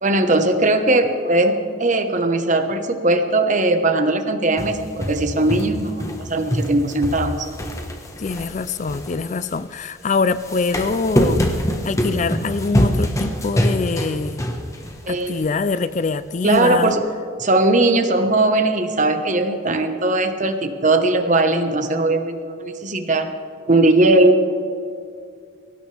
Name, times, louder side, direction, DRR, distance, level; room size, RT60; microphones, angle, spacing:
voice 1, 0.0-7.5 15.1-15.4 16.4-17.0 17.4-23.3 23.7-24.4, right 2 dB, 40° right, 1.2 m, -19 dB
sound 1, 4.6-6.2 6.5-9.6 10.3-15.0 15.4-15.5 16.5-16.6, equal, 15° left, 1.3 m, -24 dB
voice 2, 8.2-11.5 11.8-14.4 15.1-16.9, left 4 dB, 40° left, 0.4 m, -24 dB
22.5 x 18.0 x 3.4 m
head